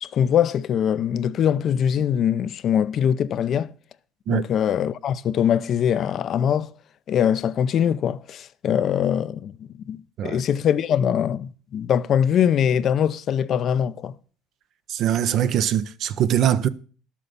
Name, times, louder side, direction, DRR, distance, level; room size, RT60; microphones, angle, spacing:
voice 1, 0.0-3.7 4.3-6.7 7.1-14.1, left 9 dB, 50° left, 0.6 m, -22 dB
voice 2, 14.9-16.7, right 10 dB, 55° right, 0.7 m, -22 dB
12.0 x 7.3 x 6.8 m
supercardioid pair, 105°, 0 cm